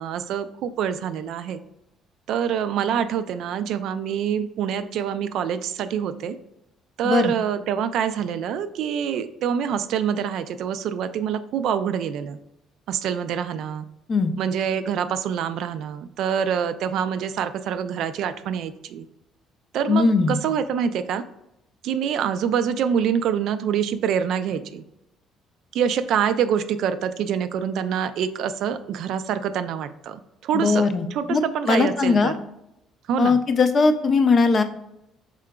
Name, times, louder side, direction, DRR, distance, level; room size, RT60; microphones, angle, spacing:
voice 1, 0.0-1.6 2.3-6.4 7.0-12.4 12.9-13.9 14.4-19.1 19.7-21.2 21.8-24.8 25.7-32.3 33.1-33.4, right 8 dB, 65° right, 11 dB, 0.3 m, -26 dB
voice 2, 19.9-20.4 30.5-32.3 33.2-34.6, left 4 dB, 30° left, 8 dB, 0.4 m, -20 dB
4.9 x 3.7 x 2.2 m, 0.83 s
cardioid pair, 155°, 0 cm